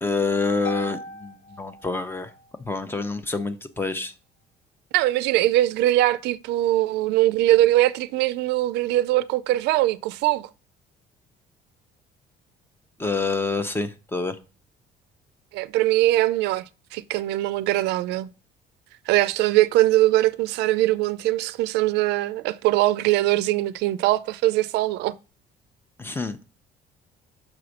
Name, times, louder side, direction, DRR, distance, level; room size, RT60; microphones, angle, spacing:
voice 1, 0.0-2.3 2.6-4.1 13.0-14.4 26.0-26.4, left 3 dB, 15° left, 0.8 m, -27 dB
Harp, 0.6-2.5, left 1 dB, 65° left, 2.7 m, -38 dB
voice 2, 4.9-10.5 15.5-16.6 16.9-18.3 19.1-25.1, right 16 dB, 90° right, 0.4 m, -21 dB
6.1 x 4.1 x 6.4 m
cardioid pair, 110°, 17 cm